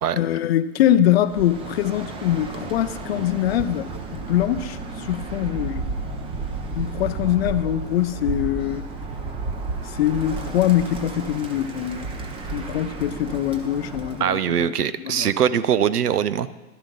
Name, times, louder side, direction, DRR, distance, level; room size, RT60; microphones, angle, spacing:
voice 1, 0.1-5.9 6.8-8.8 9.9-12.1 12.5-15.3, left 12 dB, 45° left, 0.5 m, -23 dB
Bird, 1.2-14.3, right 3 dB, 10° right, 0.6 m, -32 dB
voice 2, 14.2-16.5, right 9 dB, 85° right, 0.6 m, -22 dB
11.5 x 7.1 x 5.3 m
hypercardioid pair, 120°, 45 cm